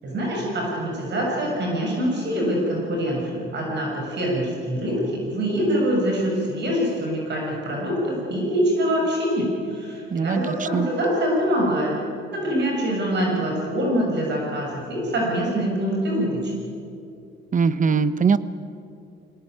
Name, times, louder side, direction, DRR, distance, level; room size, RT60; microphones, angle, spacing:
voice 1, 0.0-12.0 12.3-16.5, equal, 60° right, -1 dB, 6.9 m, -24 dB
voice 2, 10.1-10.9 17.5-18.4, right 5 dB, 40° right, 14 dB, 1.1 m, -21 dB
22.0 x 18.5 x 9.4 m, 2.4 s
cardioid pair, 90°, 20 cm